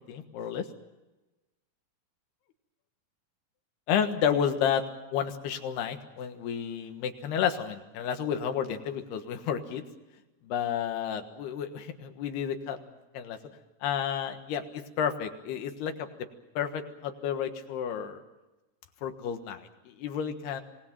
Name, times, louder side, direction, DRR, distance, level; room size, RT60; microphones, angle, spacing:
voice 1, 0.1-0.7 3.9-4.9 5.1-9.8 10.4-12.8 13.1-13.4 13.8-16.1 16.6-18.2 19.0-20.6, left 8 dB, 85° left, 6 dB, 3.5 m, -31 dB
26.0 x 19.0 x 7.4 m, 1.1 s
omnidirectional pair, 4.6 m